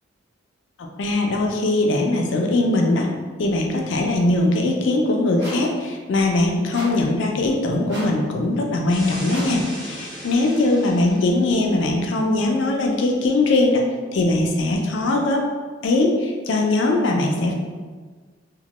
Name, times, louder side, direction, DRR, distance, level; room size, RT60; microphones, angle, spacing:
voice 1, 0.8-3.1 3.4-13.8 14.1-15.4 15.8-17.5, left 2 dB, 70° left, 1 dB, 0.4 m, -21 dB
sound 1, 5.4-5.8 6.7-7.1 7.9-8.2 9.3-9.7, equal, 60° right, 0.8 m, -35 dB
sound 2, 8.9-11.4, equal, 5° left, 0.9 m, -36 dB
2.9 x 2.1 x 2.9 m, 1.5 s
head